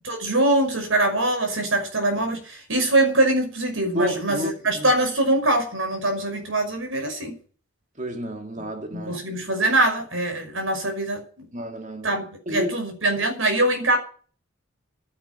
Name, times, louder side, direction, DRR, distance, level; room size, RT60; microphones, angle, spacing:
voice 1, 0.0-7.4 8.9-11.5 12.0-14.0, right 1 dB, 75° right, 5.5 m, -23 dB
voice 2, 3.9-4.9 8.0-9.1 11.5-12.7, equal, 35° right, 2.1 m, -31 dB
11.5 x 10.0 x 9.3 m
head